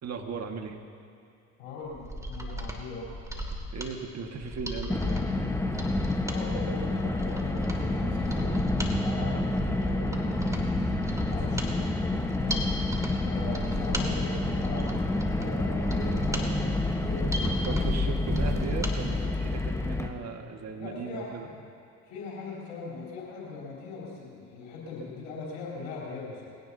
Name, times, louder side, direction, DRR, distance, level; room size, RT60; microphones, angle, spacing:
voice 1, 0.0-0.8 3.7-5.3 17.7-21.5, right 5 dB, 45° right, 4 dB, 1.8 m, -37 dB
voice 2, 1.6-3.1 6.2-8.5 9.0-10.9 11.3-11.9 12.4-12.7 13.2-15.1 15.4-17.7 18.5-18.6 20.8-21.5 22.1-26.5, left 4 dB, 80° left, -6 dB, 3.9 m, -40 dB
Mechanisms, 1.9-19.0 19.3-19.4, equal, 10° right, 2.5 m, -37 dB
Car, 4.9-20.1, left 2 dB, 5° left, 1.3 m, -28 dB
22.0 x 17.0 x 2.8 m, 2.6 s
hypercardioid pair, 60°, 37 cm